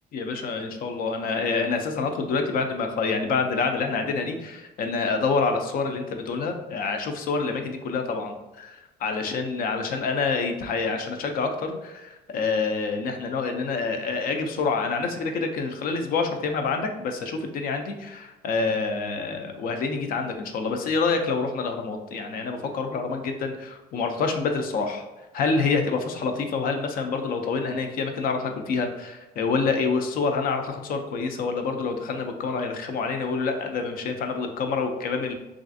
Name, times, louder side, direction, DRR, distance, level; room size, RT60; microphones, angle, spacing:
voice 1, 0.1-25.0 25.3-35.3, left 4 dB, 60° left, 5 dB, 0.4 m, -27 dB
3.2 x 2.4 x 2.5 m, 1.0 s
cardioid pair, 110°, 17 cm